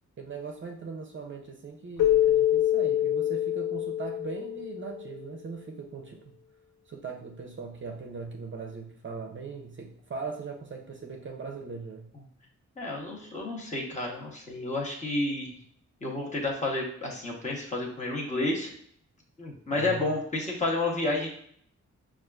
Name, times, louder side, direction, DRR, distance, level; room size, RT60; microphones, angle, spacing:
voice 1, 0.2-6.2 6.9-12.1 19.7-20.1, right 4 dB, 40° right, 1 dB, 0.5 m, -40 dB
Keyboard (musical), 2.0-5.2, left 12 dB, 80° left, 0.6 m, -25 dB
voice 2, 12.8-15.5 16.0-18.7 19.4-21.3, left 2 dB, 25° left, -3 dB, 0.9 m, -30 dB
6.3 x 2.4 x 2.3 m, 0.64 s
wide cardioid pair, 140°, 30 cm